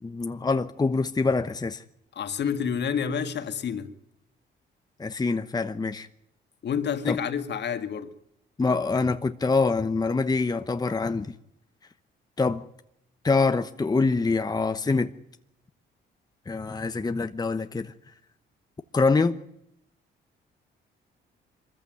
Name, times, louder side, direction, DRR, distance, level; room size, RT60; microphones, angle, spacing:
voice 1, 0.0-1.8 5.0-6.1 7.1-7.2 8.6-11.3 12.4-12.6 13.2-15.1 16.5-17.9 18.9-19.4, left 4 dB, 20° left, 1.0 m, -25 dB
voice 2, 2.1-3.9 6.6-8.1, left 7 dB, 60° left, 2.0 m, -29 dB
24.0 x 14.5 x 9.3 m
cardioid pair, 90°, 20 cm